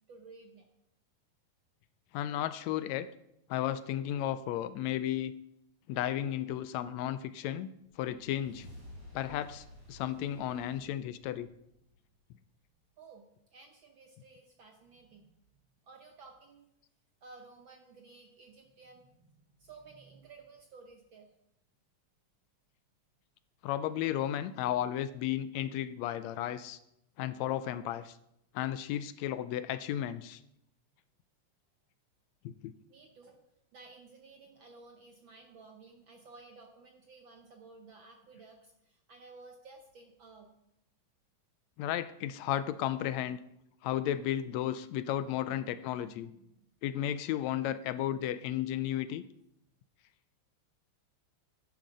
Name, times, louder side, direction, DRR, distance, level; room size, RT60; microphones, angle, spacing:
voice 1, 0.1-0.6 13.0-13.3 13.5-15.3 15.8-16.7 17.2-21.3 32.9-33.4 33.7-40.6 45.4-45.8 46.3-46.5, right 4 dB, 60° right, 3 dB, 1.3 m, -55 dB
voice 2, 2.1-3.1 3.5-5.3 5.9-7.7 8.0-8.7 9.1-11.5 23.6-26.8 27.2-28.2 28.6-30.4 32.5-32.7 41.8-43.4 43.8-46.3 46.8-49.2, left 11 dB, 80° left, 13 dB, 1.7 m, -34 dB
sound 1, 7.9-12.4, left 1 dB, 30° right, 4.3 m, -53 dB
10.5 x 10.0 x 5.3 m, 0.80 s
omnidirectional pair, 3.3 m